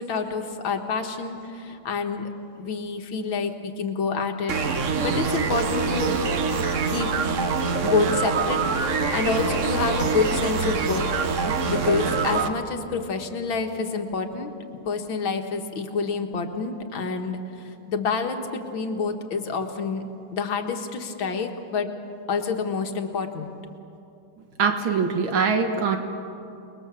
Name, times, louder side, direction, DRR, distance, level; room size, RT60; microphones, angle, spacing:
voice 1, 0.0-2.3 2.6-4.5 5.0-6.3 6.9-7.1 7.8-11.1 11.5-14.5 14.9-17.4 17.9-20.0 20.3-21.9 22.3-23.5, left 4 dB, 75° left, 5 dB, 2.3 m, -27 dB
sound 1, 4.5-12.5, right 4 dB, 45° right, 1.2 m, -25 dB
voice 2, 24.6-26.0, right 5 dB, 75° right, 6 dB, 2.1 m, -23 dB
29.0 x 21.0 x 7.2 m, 2.8 s
omnidirectional pair, 2.2 m